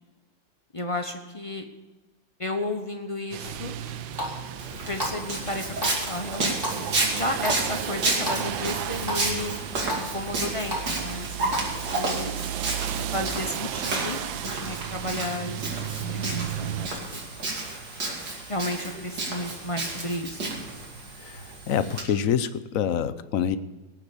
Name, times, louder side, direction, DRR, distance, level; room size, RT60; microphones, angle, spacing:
voice 1, 0.7-1.6 2.4-3.8 4.9-9.6 9.9-12.3 13.0-17.2 18.5-20.5, left 1 dB, 30° left, 5 dB, 0.6 m, -33 dB
sound 1, 3.3-16.9, right 10 dB, 90° right, 1.4 m, -34 dB
Water tap faucet, 3.4-11.6, equal, 10° right, 3.9 m, -36 dB
Walk footsteps, 4.6-22.0, right 2 dB, 65° right, 3.2 m, -32 dB
voice 2, 21.2-23.6, left 9 dB, 60° left, 13 dB, 0.9 m, -26 dB
18.0 x 7.7 x 7.0 m, 1.2 s
omnidirectional pair, 2.0 m